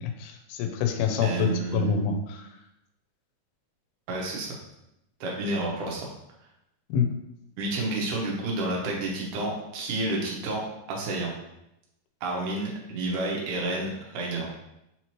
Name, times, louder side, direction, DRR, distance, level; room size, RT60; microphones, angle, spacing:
voice 1, 0.0-2.5 6.9-7.1, left 6 dB, 90° left, 4 dB, 2.6 m, -27 dB
voice 2, 1.2-1.9 4.1-4.5 5.2-6.1 7.6-10.6 10.9-11.3 12.2-14.5, right 2 dB, 75° right, -2 dB, 1.9 m, -30 dB
5.8 x 2.9 x 2.9 m, 0.85 s
omnidirectional pair, 4.7 m